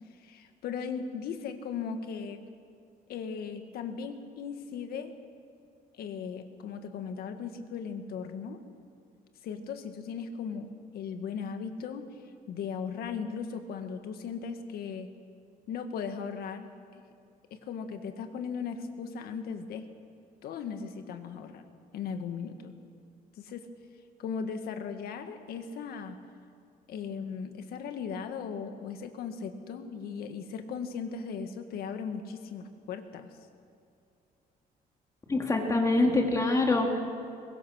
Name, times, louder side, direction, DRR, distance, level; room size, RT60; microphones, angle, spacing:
voice 1, 0.2-2.4 3.1-5.1 6.0-8.6 9.4-12.1 12.5-15.1 15.7-17.0 17.5-19.9 20.4-21.7 21.9-22.8 23.4-23.7 24.2-26.2 26.9-33.3, left 6 dB, 80° left, 7 dB, 1.8 m, -37 dB
voice 2, 35.3-37.0, left 2 dB, 20° left, 1 dB, 2.5 m, -25 dB
23.0 x 21.0 x 6.5 m, 2.5 s
cardioid pair, 170°, 16 cm